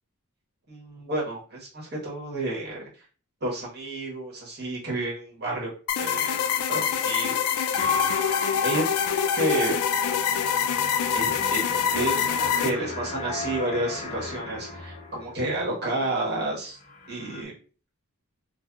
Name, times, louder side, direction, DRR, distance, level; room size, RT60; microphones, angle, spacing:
voice 1, 0.7-2.8 3.4-5.7 6.0-8.1 8.6-9.8 11.1-11.6 11.9-16.8 17.1-17.5, right 2 dB, 50° right, -4 dB, 1.2 m, -31 dB
sound 1, 5.9-12.7, left 8 dB, 70° left, 0.3 m, -25 dB
sound 2, 7.8-15.6 16.0-16.4 16.7-17.4, left 4 dB, 35° left, 0.8 m, -35 dB
3.7 x 2.3 x 2.2 m, 0.38 s
head